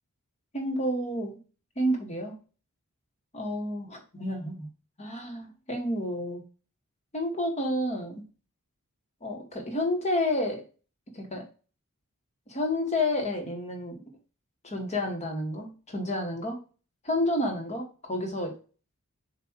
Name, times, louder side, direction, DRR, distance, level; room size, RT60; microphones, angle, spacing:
voice 1, 0.5-1.4 1.8-2.4 3.3-4.7 5.0-6.4 7.1-8.3 9.2-10.6 11.1-11.4 12.5-14.0 14.6-16.6 17.0-18.5, left 1 dB, 30° left, 2 dB, 1.7 m, -30 dB
7.4 x 3.0 x 4.7 m, 0.36 s
head